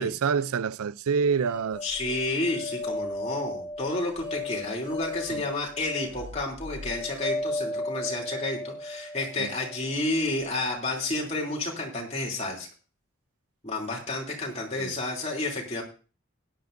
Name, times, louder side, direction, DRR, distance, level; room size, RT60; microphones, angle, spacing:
voice 1, 0.0-1.8 5.3-5.4 9.4-9.5 14.8-15.0, right 6 dB, 85° right, 0.4 m, -27 dB
sound 1, 1.4-10.6, left 1 dB, 5° right, 5.8 m, -36 dB
voice 2, 1.8-12.7 13.6-15.8, left 2 dB, 30° left, 3.1 m, -30 dB
17.0 x 11.0 x 2.6 m
head